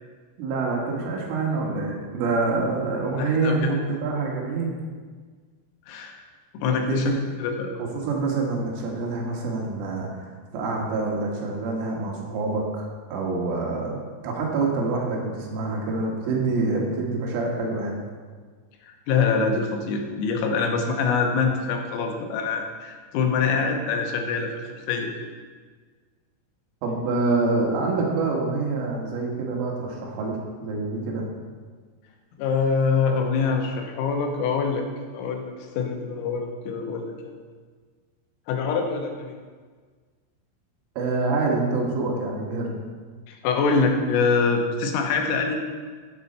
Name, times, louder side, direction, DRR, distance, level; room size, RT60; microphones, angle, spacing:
voice 1, 0.4-4.8 6.9-7.1 7.8-10.3 10.5-18.0 26.8-31.3 41.0-42.8, right 3 dB, 75° right, -1 dB, 4.2 m, -26 dB
voice 2, 3.2-3.7 5.9-6.2 6.5-7.7 18.8-25.1 32.4-34.9 35.1-37.4 38.5-39.4 43.3-45.6, left 5 dB, 90° left, 3 dB, 4.0 m, -25 dB
14.5 x 8.6 x 4.3 m, 1.5 s
omnidirectional pair, 5.9 m